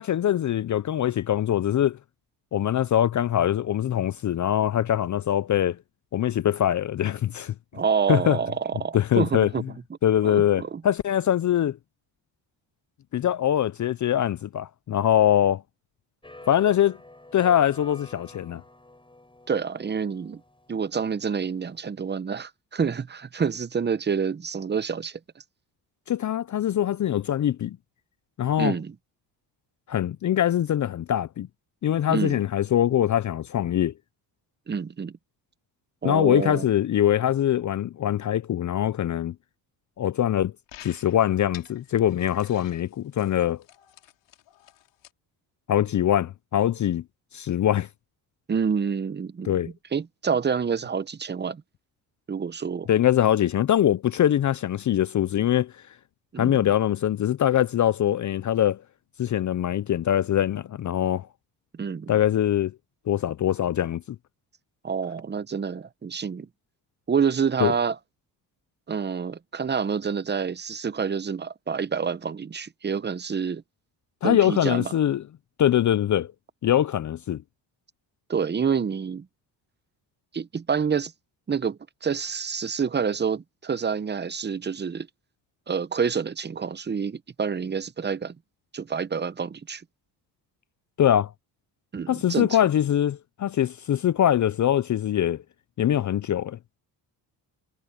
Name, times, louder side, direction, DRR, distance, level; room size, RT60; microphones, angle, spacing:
voice 1, 0.0-2.0 2.5-5.8 6.1-7.5 8.1-8.4 8.9-9.5 10.0-11.8 13.1-15.6 16.5-17.0 17.3-18.6 26.1-27.8 28.4-28.7 29.9-31.5 31.8-33.9 36.0-39.3 40.0-40.5 40.8-43.6 45.7-47.0 47.3-47.9 49.4-49.7 52.9-55.7 56.4-58.8 59.2-61.3 62.1-62.7 63.1-64.0 67.6-67.7 74.2-75.2 75.6-76.3 76.6-77.4 91.0-91.3 92.1-95.4 95.8-96.6, left 11 dB, 45° left, 0.6 m, -23 dB
voice 2, 7.7-9.6 10.2-10.8 19.5-20.4 20.7-25.2 28.6-28.9 32.1-32.4 34.7-35.2 36.0-36.7 48.5-49.6 49.9-51.6 52.3-52.9 56.3-56.7 61.7-62.2 64.8-66.5 67.1-68.0 68.9-73.6 74.2-74.9 78.3-79.3 80.3-81.1 81.5-85.1 85.7-88.4 88.7-89.8 91.9-92.6, right 6 dB, 25° right, 0.8 m, -28 dB
sound 1, 16.2-21.8, left 2 dB, 10° left, 6.5 m, -48 dB
sound 2, 40.7-45.1, left 14 dB, 85° left, 3.2 m, -50 dB
cardioid pair, 90°, 43 cm